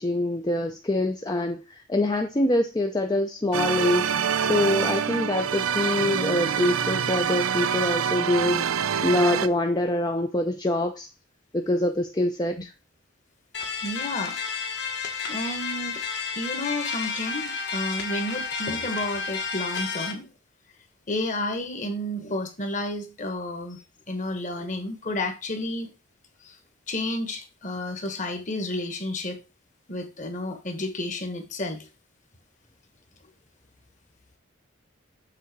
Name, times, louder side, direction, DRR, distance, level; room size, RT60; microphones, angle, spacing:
voice 1, 0.0-4.1 4.4-8.7 9.0-11.1 11.5-12.7, left 1 dB, 20° left, 0.5 m, -25 dB
sound 1, 3.5-9.5, right 7 dB, 80° right, 0.5 m, -26 dB
sound 2, 13.5-20.1, left 5 dB, 55° left, 1.6 m, -31 dB
voice 2, 13.8-14.4 15.3-16.0 16.3-20.3 21.1-25.9 26.4-26.6 26.9-29.4 29.9-31.9, left 1 dB, 35° left, 1.4 m, -31 dB
7.5 x 3.8 x 6.0 m
head